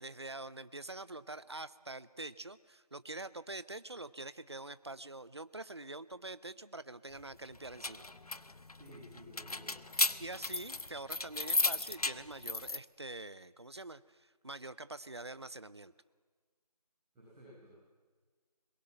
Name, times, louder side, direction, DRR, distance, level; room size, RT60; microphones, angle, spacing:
voice 1, 0.0-8.1 10.2-15.9, right 2 dB, 40° right, 16 dB, 0.6 m, -45 dB
sound 1, 7.5-12.8, left 2 dB, 65° left, 1.0 m, -35 dB
voice 2, 8.7-9.9 17.1-17.9, equal, 5° right, -19 dB, 5.3 m, -55 dB
22.0 x 21.0 x 7.8 m, 1.5 s
figure-of-eight pair, 175°, 21 cm